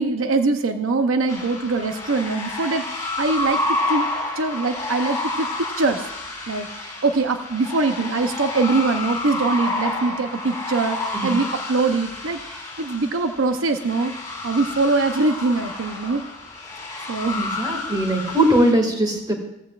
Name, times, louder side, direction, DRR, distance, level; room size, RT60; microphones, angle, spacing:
voice 1, 0.0-4.1 4.4-5.5 5.8-6.0 6.5-14.1 14.4-16.2 17.1-17.4, right 3 dB, 80° right, 7 dB, 0.7 m, -23 dB
sound 1, 1.3-18.7, left 2 dB, 15° left, 2.9 m, -30 dB
voice 2, 17.3-19.3, right 1 dB, 20° right, 3 dB, 1.9 m, -20 dB
16.5 x 14.5 x 2.4 m, 0.90 s
head